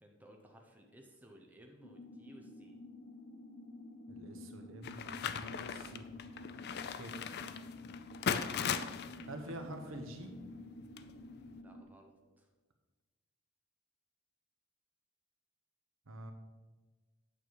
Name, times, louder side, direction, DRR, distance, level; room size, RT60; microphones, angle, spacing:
voice 1, 0.0-2.8 11.5-12.5, equal, 10° right, 1 dB, 0.8 m, -59 dB
sound 1, 1.8-11.8, left 2 dB, 90° left, 1.2 m, -51 dB
voice 2, 4.1-6.1 6.9-7.1 9.2-10.4 16.1-16.3, right 1 dB, 70° right, 5 dB, 1.1 m, -47 dB
sound 2, 4.8-11.6, left 7 dB, 50° left, 0.4 m, -40 dB
8.7 x 6.9 x 4.7 m, 1.3 s
head